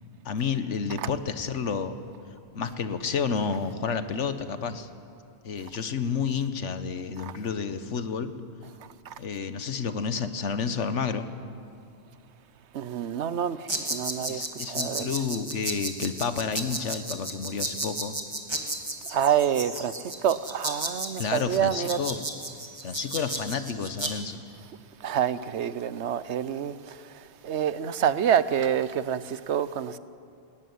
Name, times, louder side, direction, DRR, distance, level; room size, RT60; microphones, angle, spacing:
voice 1, 0.2-2.0 2.5-4.9 5.4-8.3 9.2-11.3 14.3-18.1 21.2-22.2 22.8-24.4, left 6 dB, 85° left, 1.4 m, -30 dB
voice 2, 12.7-15.2 19.1-19.9 20.2-22.0 25.0-27.0 27.4-30.0, right 9 dB, 75° right, 1.0 m, -27 dB
sound 1, 13.7-24.1, right 1 dB, 20° right, 1.8 m, -34 dB
21.0 x 17.5 x 9.4 m
omnidirectional pair, 1.2 m